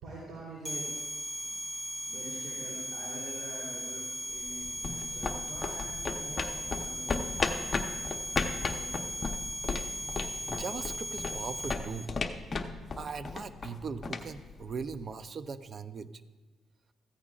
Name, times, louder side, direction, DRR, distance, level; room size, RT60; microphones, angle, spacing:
voice 1, 0.0-0.9 2.0-4.0 4.3-9.5, right 2 dB, 70° right, -6 dB, 3.5 m, -46 dB
sound 1, 0.6-12.1, equal, 15° right, 1.4 m, -38 dB
sound 2, 4.4-15.2, left 4 dB, 35° left, 0.9 m, -36 dB
voice 2, 10.5-12.1 13.0-16.2, right 5 dB, 45° right, 13 dB, 0.6 m, -39 dB
15.0 x 15.0 x 2.5 m, 1.3 s
cardioid pair, 90°, 0 cm